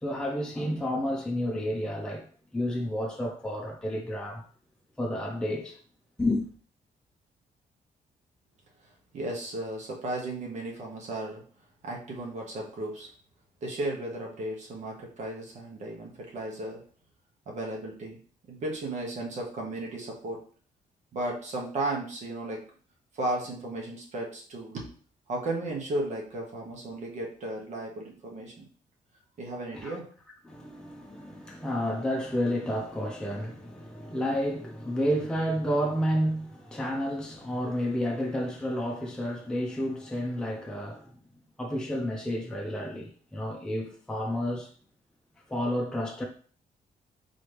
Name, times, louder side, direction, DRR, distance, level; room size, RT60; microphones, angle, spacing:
voice 1, 0.0-2.3 2.5-4.4 5.0-5.8 6.2-6.5 29.7-30.0 30.4-41.1 41.6-44.7 45.5-46.2, equal, 5° left, 0.6 m, -30 dB
voice 2, 9.1-11.4 11.8-13.1 13.6-16.8 17.5-18.2 18.5-20.4 21.1-22.6 23.1-24.9 25.3-28.7 29.4-30.0, right 2 dB, 55° right, 1.1 m, -34 dB
4.0 x 3.1 x 3.4 m
cardioid pair, 145°, 14 cm